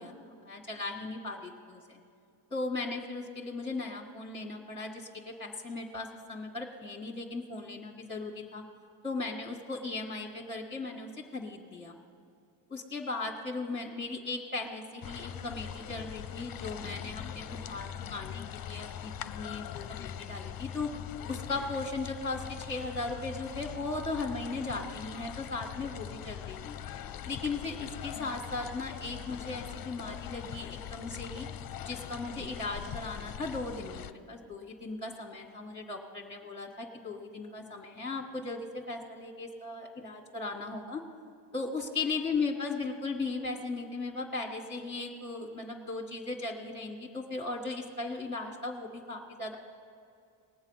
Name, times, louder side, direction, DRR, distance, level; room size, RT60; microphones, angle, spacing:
voice 1, 0.0-2.0 2.5-8.6 9.0-12.0 12.7-20.9 21.3-26.8 27.3-31.5 31.8-41.0 41.5-49.6, left 3 dB, 10° left, 0 dB, 1.5 m, -37 dB
sound 1, 15.0-34.1, left 10 dB, 45° left, 0.6 m, -42 dB
19.5 x 7.3 x 5.5 m, 2.5 s
supercardioid pair, 80°, 50 cm